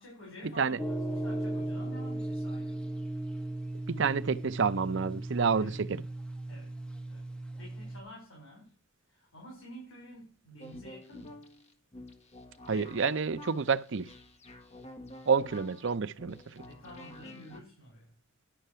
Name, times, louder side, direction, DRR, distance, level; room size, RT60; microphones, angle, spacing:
voice 1, 0.0-3.0 5.6-5.8 6.5-6.8 7.1-7.2 7.6-8.7 9.1-11.4 16.6-18.1, equal, 80° left, 5.4 m, -50 dB
sound 1, 0.8-8.0, right 1 dB, 5° left, 1.2 m, -36 dB
voice 2, 3.9-6.0 12.7-14.1 15.3-16.4, right 5 dB, 65° right, 0.6 m, -28 dB
sound 2, 10.6-17.6, left 1 dB, 35° left, 1.5 m, -49 dB
11.5 x 5.8 x 6.8 m
head